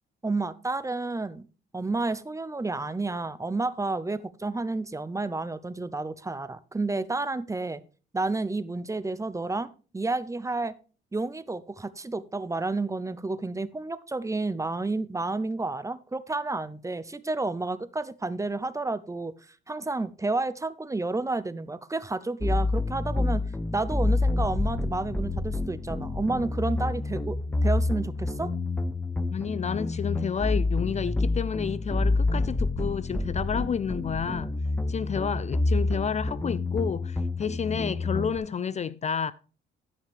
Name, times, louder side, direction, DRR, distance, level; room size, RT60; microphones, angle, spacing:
voice 1, 0.2-1.5 1.7-7.8 8.1-10.7 11.1-19.3 19.7-23.4 23.7-28.5, right 3 dB, 15° right, 0.7 m, -30 dB
sound 1, 22.4-38.4, left 2 dB, 10° left, 0.9 m, -28 dB
voice 2, 29.3-34.5 34.9-39.3, left 7 dB, 35° left, 0.4 m, -30 dB
13.5 x 5.7 x 3.4 m
cardioid pair, 90°, 20 cm